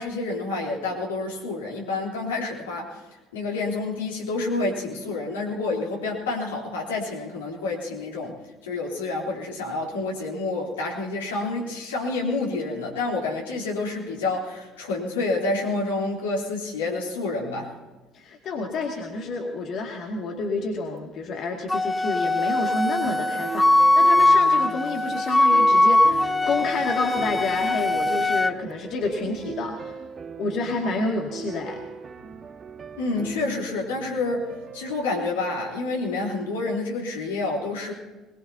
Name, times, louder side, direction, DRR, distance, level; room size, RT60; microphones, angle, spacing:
voice 1, 0.0-3.0 3.3-8.4 8.6-17.7 33.0-37.9, left 3 dB, 80° left, -2 dB, 3.5 m, -28 dB
voice 2, 18.1-30.0 30.4-31.8, left 3 dB, 55° left, 1 dB, 2.3 m, -29 dB
Wind instrument woodwind instrument, 21.7-28.5, left 2 dB, 10° left, 0.5 m, -20 dB
sound 1, 23.0-35.0, right 6 dB, 35° right, 1.6 m, -40 dB
22.0 x 21.5 x 2.9 m, 1.2 s
figure-of-eight pair, 55°, 0 cm